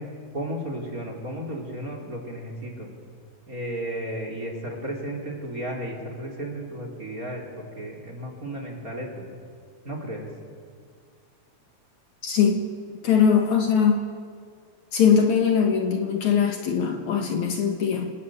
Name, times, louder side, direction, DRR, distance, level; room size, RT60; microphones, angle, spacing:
voice 1, 0.0-2.9 3.5-9.2 9.8-10.3, right 1 dB, 25° right, 2 dB, 4.0 m, -34 dB
voice 2, 12.2-12.7 13.0-14.1 14.9-18.1, left 7 dB, 60° left, 4 dB, 2.8 m, -21 dB
28.0 x 20.0 x 8.9 m, 2.1 s
omnidirectional pair, 3.9 m